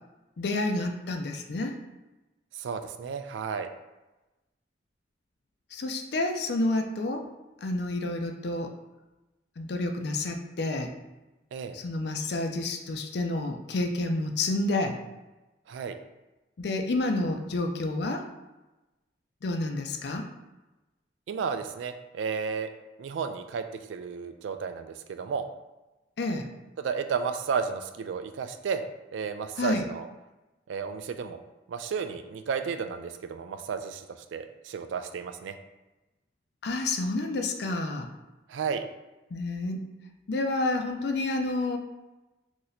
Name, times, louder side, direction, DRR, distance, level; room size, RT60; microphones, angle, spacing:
voice 1, 0.4-1.8 5.7-7.3 7.6-8.7 9.6-10.9 11.7-15.0 16.6-18.2 19.4-20.3 26.2-26.5 29.6-29.9 36.6-38.1 39.3-39.9 40.3-41.8, left 2 dB, 65° left, 4 dB, 0.4 m, -29 dB
voice 2, 2.5-3.7 11.5-11.8 15.7-16.0 21.3-22.7 23.0-25.4 26.8-28.8 29.1-30.1 30.7-31.4 31.7-35.5 38.5-38.8, right 6 dB, 85° right, 8 dB, 0.3 m, -33 dB
2.9 x 2.6 x 4.0 m, 1.1 s
head